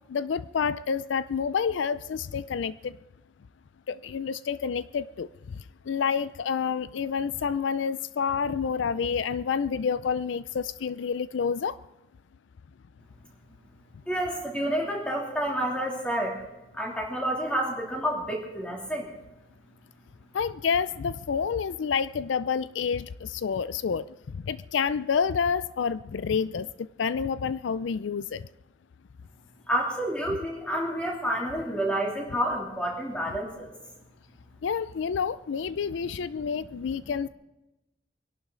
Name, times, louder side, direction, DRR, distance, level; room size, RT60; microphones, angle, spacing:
voice 1, 0.1-3.0 3.9-5.6 5.8-11.8 20.3-28.5 34.6-37.3, left 6 dB, 80° left, 16 dB, 0.4 m, -29 dB
voice 2, 14.1-16.4 16.7-19.1 29.7-33.7, right 1 dB, 5° left, -1 dB, 2.8 m, -29 dB
24.0 x 11.5 x 3.8 m, 0.99 s
head